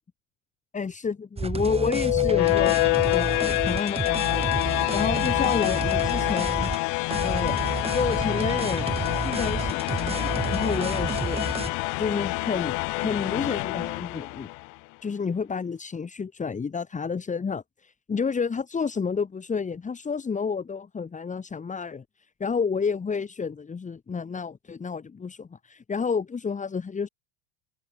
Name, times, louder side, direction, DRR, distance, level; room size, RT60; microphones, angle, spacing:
voice 1, 0.7-2.8 3.1-6.7 7.2-7.6 7.9-9.0 9.2-11.4 12.0-14.5 15.0-22.0 22.4-27.1, left 5 dB, 20° left, 3.5 m, -30 dB
sound 1, 1.4-6.8 7.1-11.7, right 4 dB, 15° right, 2.1 m, -31 dB
sound 2, 1.7-14.7, left 29 dB, 50° left, 0.8 m, -26 dB
hypercardioid pair, 105°, 39 cm